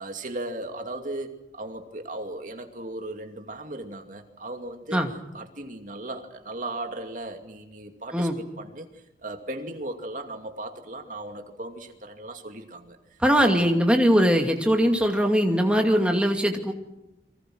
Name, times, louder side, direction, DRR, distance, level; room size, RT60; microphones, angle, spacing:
voice 1, 0.0-5.0 5.3-13.0 13.4-13.7, right 2 dB, 45° right, 5 dB, 2.5 m, -37 dB
voice 2, 13.2-16.7, equal, 5° right, 3 dB, 2.5 m, -21 dB
29.5 x 24.0 x 6.3 m, 0.92 s
head